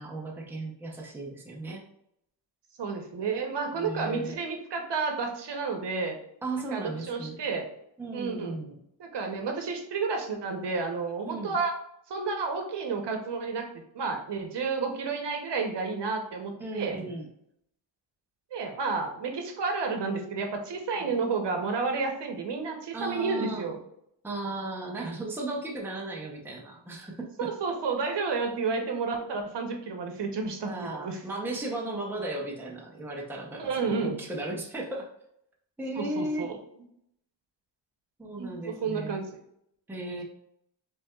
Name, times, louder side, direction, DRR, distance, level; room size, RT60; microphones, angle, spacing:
voice 1, 0.0-1.8 3.7-4.4 6.4-7.4 8.0-8.7 11.3-11.6 16.6-17.3 21.0-21.1 22.9-23.6 24.2-27.5 30.6-35.1 35.8-36.5 38.2-39.2 39.9-40.2, right 2 dB, 5° right, -2 dB, 0.7 m, -35 dB
voice 2, 2.8-6.2 6.7-7.6 8.1-8.6 9.0-11.7 12.1-13.7 13.9-17.0 18.5-23.8 27.4-31.2 33.6-34.2 35.9-36.6 38.4-39.3, right 4 dB, 65° right, 3 dB, 1.0 m, -31 dB
5.7 x 3.5 x 2.3 m, 0.75 s
wide cardioid pair, 140°, 45 cm